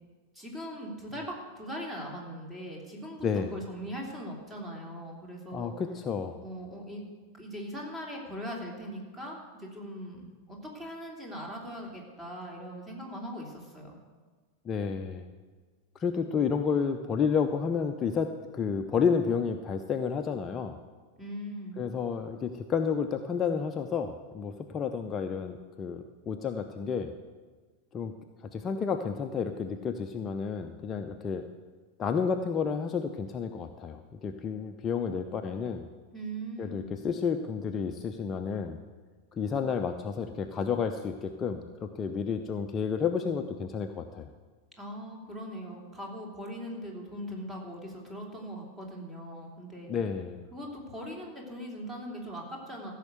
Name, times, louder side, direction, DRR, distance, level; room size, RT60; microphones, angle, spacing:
voice 1, 0.3-1.2 1.6-3.2 3.5-5.8 6.4-7.0 7.3-14.0 21.2-21.8 36.1-36.9 44.8-49.9 50.5-52.9, equal, 15° right, -1 dB, 3.2 m, -40 dB
voice 2, 3.2-3.5 5.5-6.4 14.6-15.3 15.9-20.8 21.8-27.1 27.9-28.1 28.4-31.4 32.0-35.9 36.6-38.8 39.3-44.3 49.9-50.5, left 6 dB, 25° left, 6 dB, 0.7 m, -31 dB
15.0 x 6.6 x 8.0 m, 1.5 s
figure-of-eight pair, 90°, 0 cm